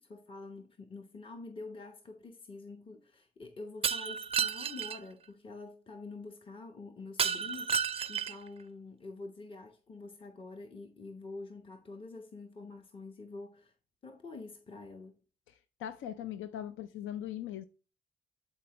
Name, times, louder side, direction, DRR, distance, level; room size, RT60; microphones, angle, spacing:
voice 1, 0.0-13.7 14.0-15.2, left 3 dB, 25° left, 0.9 m, -47 dB
Shatter, 3.8-5.0 7.2-8.5, right 7 dB, 30° right, 0.4 m, -31 dB
voice 2, 15.5-17.6, left 11 dB, 80° left, 0.5 m, -40 dB
11.0 x 4.3 x 2.9 m
cardioid pair, 90°, 20 cm